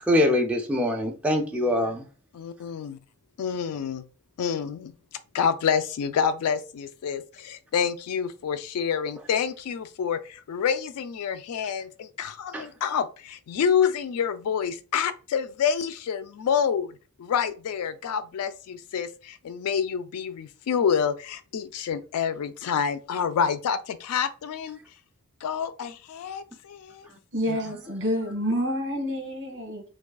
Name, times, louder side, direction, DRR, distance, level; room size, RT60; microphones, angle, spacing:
voice 1, 0.1-2.0 12.5-12.7, left 1 dB, 5° right, 0.4 m, -23 dB
voice 2, 2.3-3.0 3.4-4.0 4.4-4.9 5.3-24.8 25.4-27.1 27.5-27.6, left 7 dB, 80° left, 0.3 m, -28 dB
voice 3, 27.3-29.8, equal, 55° right, 1.4 m, -28 dB
4.6 x 2.3 x 2.3 m
head